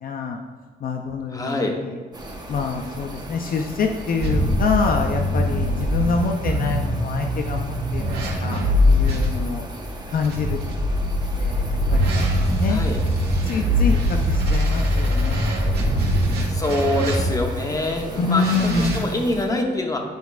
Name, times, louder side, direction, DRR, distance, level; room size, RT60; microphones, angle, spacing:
voice 1, 0.0-0.4 0.8-2.0 2.5-8.0 8.4-8.6 8.9-9.6 10.1-11.1 11.4-12.8 13.4-15.5 18.2-19.1, left 4 dB, 55° left, 3 dB, 0.5 m, -26 dB
voice 2, 1.3-1.8 12.7-13.0 16.5-20.0, left 2 dB, 20° left, 2 dB, 0.9 m, -25 dB
sound 1, 2.1-19.5, right 1 dB, 25° right, 0.9 m, -37 dB
sound 2, 4.2-9.3 10.2-17.6 18.3-19.0, equal, 65° right, 1.5 m, -22 dB
9.4 x 4.5 x 2.4 m, 1.5 s
cardioid pair, 100°, 18 cm